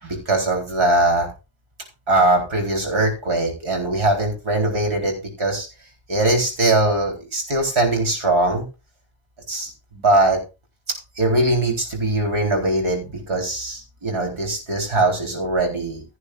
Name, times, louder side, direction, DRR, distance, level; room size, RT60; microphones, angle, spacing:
voice 1, 0.0-1.3 2.1-5.7 6.1-8.6 9.5-10.4 11.2-16.0, right 2 dB, 90° right, 2 dB, 4.1 m, -21 dB
16.0 x 9.4 x 2.5 m, 0.28 s
wide cardioid pair, 165°, 47 cm